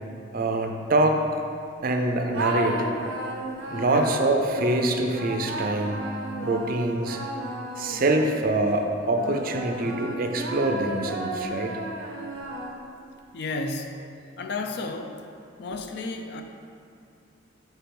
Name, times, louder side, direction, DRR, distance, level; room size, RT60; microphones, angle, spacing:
voice 1, 0.3-1.2 1.8-2.9 3.7-7.2 7.8-11.7, right 2 dB, 50° right, 4 dB, 0.5 m, -25 dB
sound 1, 2.3-8.6 9.1-13.1, right 1 dB, 90° right, 0.8 m, -34 dB
voice 2, 13.3-14.1 14.4-15.1 15.6-16.4, left 3 dB, 60° left, 5 dB, 0.4 m, -32 dB
4.6 x 4.5 x 5.2 m, 2.5 s
head